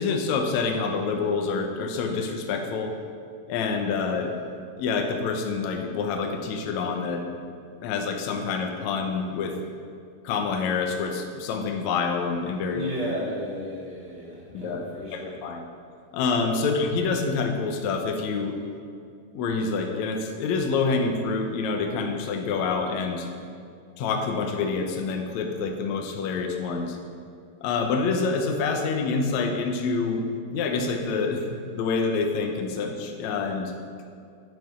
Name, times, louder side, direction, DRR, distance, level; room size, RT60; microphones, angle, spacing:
voice 1, 0.0-2.9 3.5-4.3 4.8-7.2 7.8-9.6 10.2-12.9 14.5-15.7 16.1-18.6 19.3-23.3 24.0-27.0 27.6-30.2 30.5-33.7, left 4 dB, 80° left, 3 dB, 1.6 m, -27 dB
voice 2, 12.7-15.4 16.6-16.7, equal, 20° left, -8 dB, 1.2 m, -34 dB
9.4 x 6.9 x 5.5 m, 2.4 s
omnidirectional pair, 4.4 m